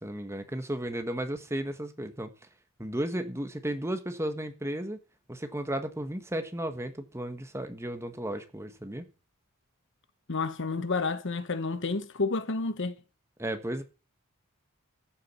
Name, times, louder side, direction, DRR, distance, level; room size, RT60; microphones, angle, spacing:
voice 1, 0.0-2.3 2.8-5.0 5.3-9.0 13.4-13.8, right 1 dB, 10° right, 1.4 m, -34 dB
voice 2, 10.3-12.9, left 3 dB, 55° left, 1.1 m, -30 dB
14.0 x 7.5 x 5.5 m
head